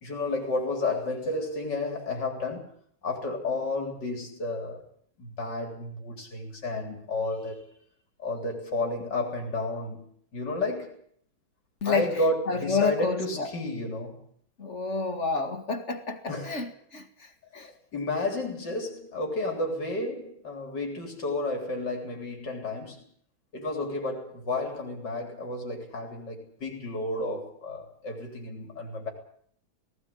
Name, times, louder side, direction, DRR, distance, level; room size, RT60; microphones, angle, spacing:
voice 1, 0.0-2.7 3.0-4.8 5.2-7.7 8.2-10.1 10.3-11.0 11.8-14.2 16.3-16.7 17.6-23.0 23.5-29.1, left 2 dB, 85° left, 4.4 m, -31 dB
voice 2, 12.5-13.5 14.6-17.1 17.5-17.7, left 4 dB, 45° left, 2.2 m, -29 dB
19.0 x 17.5 x 8.7 m
omnidirectional pair, 1.8 m